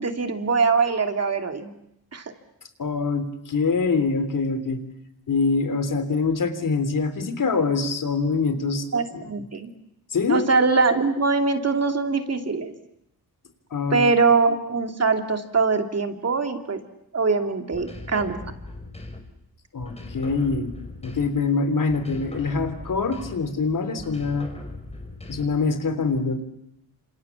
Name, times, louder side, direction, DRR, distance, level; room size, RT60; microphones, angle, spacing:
voice 1, 0.0-1.7 2.1-2.2 8.9-9.7 10.3-12.7 13.9-16.8 17.1-18.4, right 4 dB, 40° right, 5 dB, 2.9 m, -22 dB
voice 2, 2.8-4.8 5.3-9.3 10.1-10.5 13.7-14.0 19.7-20.8 21.0-24.5 25.3-26.4, left 4 dB, 60° left, 10 dB, 3.4 m, -24 dB
sound 1, 17.7-19.4 19.8-21.5 21.9-23.6 24.0-25.7, left 2 dB, 15° left, 5.0 m, -39 dB
28.0 x 27.0 x 7.3 m, 0.79 s
cardioid pair, 95°, 37 cm